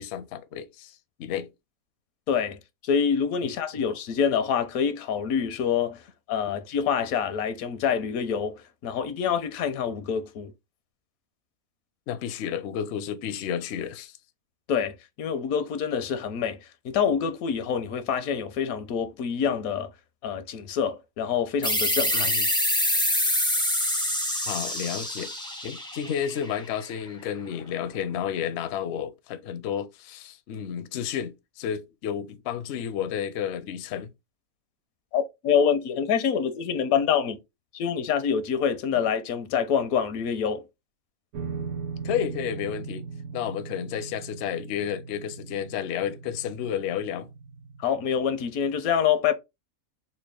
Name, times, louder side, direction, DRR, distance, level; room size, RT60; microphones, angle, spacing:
voice 1, 0.0-1.5 3.4-3.5 12.1-14.2 22.1-22.5 24.4-25.3 25.6-34.1 42.0-43.0 43.3-47.3, left 9 dB, 65° left, 0.7 m, -31 dB
voice 2, 2.3-2.6 2.8-6.0 6.3-10.5 14.7-16.6 16.8-19.9 20.2-22.3 35.1-37.4 37.7-40.6 47.8-49.3, left 7 dB, 80° left, 1.1 m, -26 dB
sound 1, 21.6-26.9, left 1 dB, 5° left, 0.4 m, -26 dB
sound 2, 41.3-47.9, right 5 dB, 80° right, 1.1 m, -39 dB
4.1 x 2.2 x 3.2 m
omnidirectional pair, 1.5 m